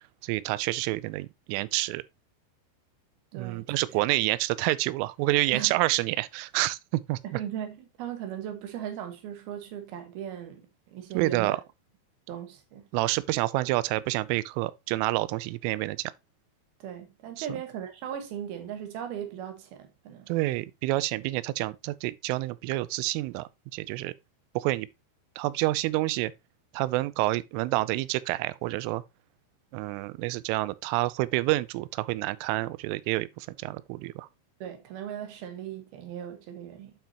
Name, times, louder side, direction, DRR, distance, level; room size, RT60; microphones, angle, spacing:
voice 1, 0.2-2.0 3.3-7.4 11.1-11.6 12.9-16.1 17.4-17.5 20.3-24.1 24.6-24.9 25.4-26.3 26.7-29.0 29.7-34.3, right 19 dB, 90° right, 3.1 m, -28 dB
voice 2, 3.3-3.7 5.5-5.7 7.2-11.6 12.3-12.9 16.8-20.3 34.6-36.9, right 9 dB, 65° right, 2.9 m, -38 dB
8.6 x 5.7 x 2.9 m
omnidirectional pair, 5.6 m